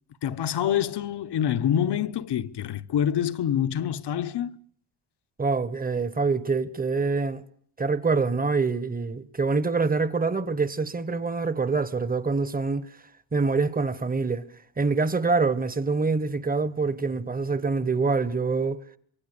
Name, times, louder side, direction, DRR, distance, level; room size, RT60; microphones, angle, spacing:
voice 1, 0.2-4.6, left 9 dB, 60° left, 1.1 m, -26 dB
voice 2, 5.4-7.4 7.8-12.9 13.3-14.5 14.8-18.8, right 4 dB, 20° right, 1.3 m, -25 dB
26.0 x 23.0 x 6.9 m
cardioid pair, 110°, 47 cm